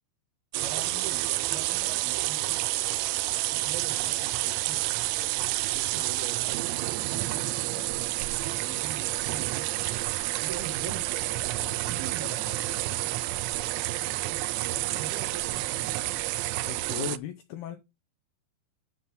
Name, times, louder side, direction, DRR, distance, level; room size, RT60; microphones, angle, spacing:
voice 1, 0.5-3.1 3.5-5.2 5.7-6.6 6.8-9.7 10.4-12.6 12.8-13.1 14.1-16.1, right 6 dB, 70° right, 2.6 m, -44 dB
sound 1, 0.5-17.2, right 17 dB, 85° right, 2.4 m, -29 dB
voice 2, 11.6-11.9 16.6-17.8, left 11 dB, 85° left, 2.3 m, -38 dB
11.5 x 4.3 x 5.1 m
omnidirectional pair, 5.5 m